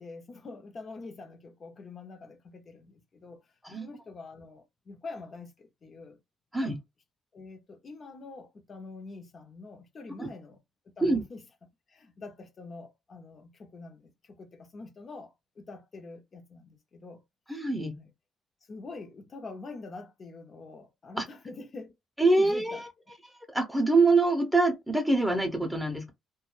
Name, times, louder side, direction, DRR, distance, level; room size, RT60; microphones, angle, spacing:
voice 1, 0.0-3.4 3.8-6.2 6.6-6.8 7.3-10.6 11.0-11.4 11.9-17.2 17.9-18.1 18.7-21.9 22.4-22.8, left 3 dB, 45° left, 0.7 m, -45 dB
voice 2, 17.5-17.9 21.2-21.3 22.2-22.9 23.5-26.1, right 2 dB, 5° right, 0.7 m, -25 dB
2.2 x 2.2 x 3.1 m
cardioid pair, 90°, 0 cm